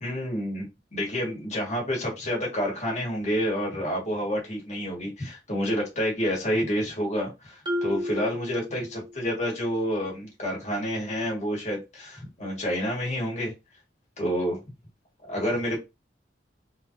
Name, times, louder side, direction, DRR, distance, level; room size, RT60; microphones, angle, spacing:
voice 1, 0.0-0.7 0.9-13.5 14.2-14.6 15.3-15.8, equal, 40° left, 1.7 m, -29 dB
Marimba xylophone, 7.7-9.4, left 1 dB, 25° right, 0.7 m, -32 dB
3.7 x 2.9 x 2.8 m
head